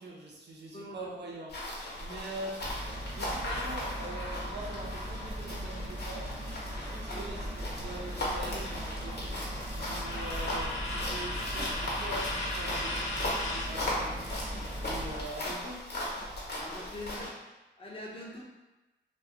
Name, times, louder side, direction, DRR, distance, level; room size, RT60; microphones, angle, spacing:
voice 1, 0.0-2.6 3.1-6.3 6.7-9.4 9.7-14.4 14.8-15.8, right 2 dB, 60° right, -3 dB, 0.7 m, -43 dB
sound 1, 1.5-17.3, left 1 dB, 60° left, 1.0 m, -38 dB
sound 2, 2.6-15.2, equal, 25° right, 0.7 m, -40 dB
sound 3, 3.4-7.5 7.8-13.8, left 1 dB, 90° left, 0.7 m, -39 dB
voice 2, 16.5-17.3 17.8-18.4, left 1 dB, 30° left, -4 dB, 0.7 m, -43 dB
2.3 x 2.3 x 3.6 m, 1.1 s
cardioid pair, 80°, 19 cm